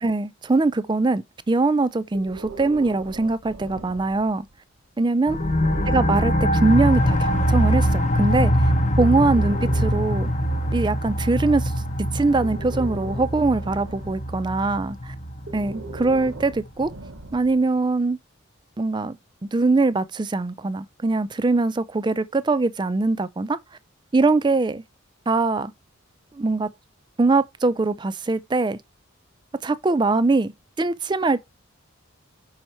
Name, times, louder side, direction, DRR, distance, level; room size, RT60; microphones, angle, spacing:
voice 1, 0.0-4.5 5.0-5.4 5.9-8.7 9.0-10.3 10.7-11.7 12.1-15.1 15.5-16.9 17.3-18.2 18.8-19.2 19.5-23.6 24.1-24.8 25.3-25.7 26.3-26.7 27.2-28.8 29.6-31.4, right 3 dB, 20° right, 0.3 m, -22 dB
Breathing, 2.1-4.5 5.3-7.7 8.8-11.6 12.2-14.4 15.4-17.7, right 3 dB, 65° right, 0.9 m, -40 dB
sound 1, 5.3-16.6, equal, 35° left, 0.8 m, -23 dB
5.6 x 4.4 x 4.3 m
head